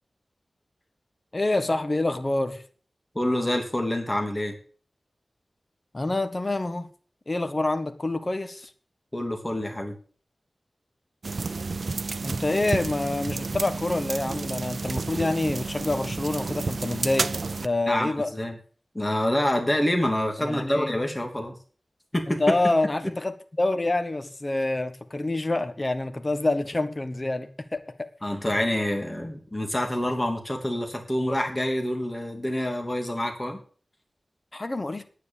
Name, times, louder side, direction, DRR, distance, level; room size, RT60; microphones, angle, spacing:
voice 1, 1.3-2.6 5.9-6.9 7.3-8.7 12.2-18.3 20.4-20.9 22.3-27.5 28.0-28.1 34.5-35.0, left 2 dB, 30° left, 1.5 m, -27 dB
voice 2, 3.1-4.5 9.1-10.0 17.9-18.6 18.9-21.5 22.1-22.5 28.2-33.6, left 1 dB, 15° left, 2.9 m, -27 dB
sound 1, 11.2-17.7, right 4 dB, 65° right, 0.5 m, -31 dB
10.0 x 9.3 x 7.1 m
wide cardioid pair, 85°, 0 cm